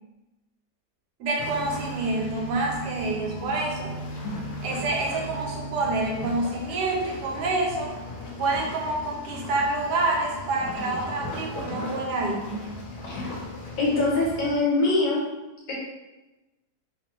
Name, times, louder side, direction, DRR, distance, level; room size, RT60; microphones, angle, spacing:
voice 1, 1.2-3.9 4.6-7.9 8.4-12.6, right 2 dB, 75° right, 0 dB, 1.1 m, -27 dB
sound 1, 1.4-14.6, equal, 85° left, 1.2 m, -36 dB
voice 2, 13.8-15.2 15.7-15.8, left 2 dB, 65° left, -6 dB, 1.3 m, -23 dB
3.0 x 2.1 x 2.9 m, 1.1 s
omnidirectional pair, 1.8 m